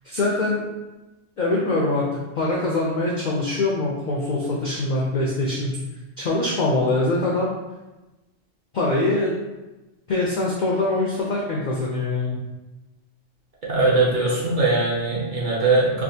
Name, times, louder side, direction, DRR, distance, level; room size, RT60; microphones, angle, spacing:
voice 1, 0.0-0.6 1.4-2.0 2.4-5.8 6.2-7.5 8.7-9.4 10.1-12.4, left 2 dB, 65° left, -3 dB, 0.4 m, -23 dB
voice 2, 13.7-16.0, right 3 dB, 45° right, -5 dB, 0.7 m, -20 dB
3.4 x 2.4 x 2.7 m, 1.1 s
omnidirectional pair, 1.3 m